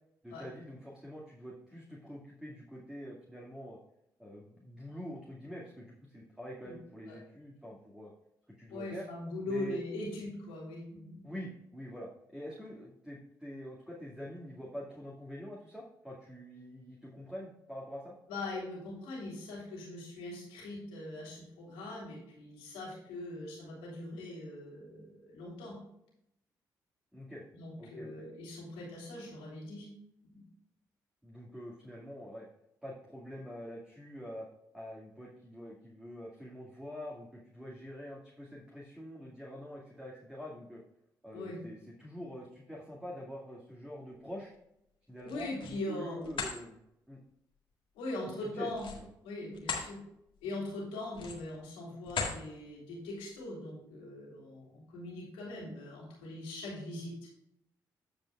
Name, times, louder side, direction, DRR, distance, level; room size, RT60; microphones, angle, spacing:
voice 1, 0.2-3.8 4.2-8.1 8.6-9.1 9.5-9.8 11.2-18.1 27.1-27.4 27.8-28.3 31.2-32.5 32.8-34.5 34.7-40.8 41.2-44.5 45.1-46.8 47.1-47.2 48.4-49.1, equal, 5° right, -4 dB, 2.1 m, -45 dB
voice 2, 8.7-11.2 18.3-25.8 27.5-29.9 30.3-30.4 41.3-41.6 45.2-46.3 48.0-48.8 49.2-50.0 50.4-57.1, left 1 dB, 85° left, -4 dB, 3.4 m, -41 dB
sound 1, 45.2-45.8 46.2-46.6 48.7-49.9 50.3-50.5 51.1-51.6 52.0-52.4, left 5 dB, 60° left, 1.8 m, -37 dB
15.0 x 5.2 x 2.4 m, 0.81 s
hypercardioid pair, 45°, 10 cm